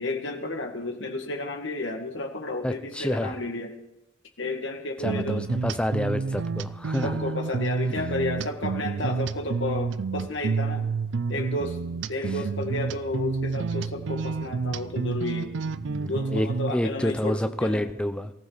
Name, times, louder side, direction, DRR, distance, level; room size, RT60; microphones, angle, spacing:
voice 1, 0.0-3.7 4.4-5.5 7.0-10.9 11.3-11.8 12.1-15.5 16.1-17.8, left 2 dB, 70° left, 3 dB, 2.0 m, -32 dB
voice 2, 2.6-3.4 5.0-7.2 15.8-18.3, equal, 5° left, 9 dB, 0.6 m, -28 dB
sound 1, 5.0-16.7, right 4 dB, 70° right, 0.4 m, -29 dB
19.0 x 14.5 x 4.1 m, 0.88 s
head